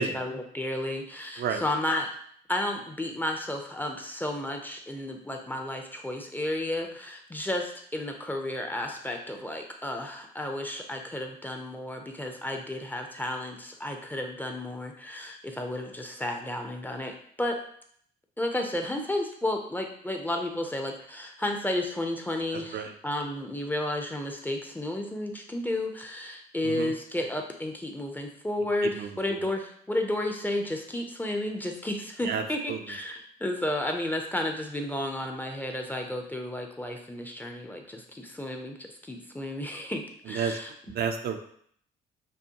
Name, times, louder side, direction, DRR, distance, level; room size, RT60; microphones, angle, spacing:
voice 1, 0.0-2.1 2.5-17.6 18.4-38.8 39.0-40.7, left 1 dB, 10° left, 3 dB, 0.5 m, -32 dB
voice 2, 40.9-41.4, right 6 dB, 55° right, 5 dB, 0.5 m, -29 dB
5.3 x 2.0 x 2.8 m, 0.63 s
cardioid pair, 85°, 20 cm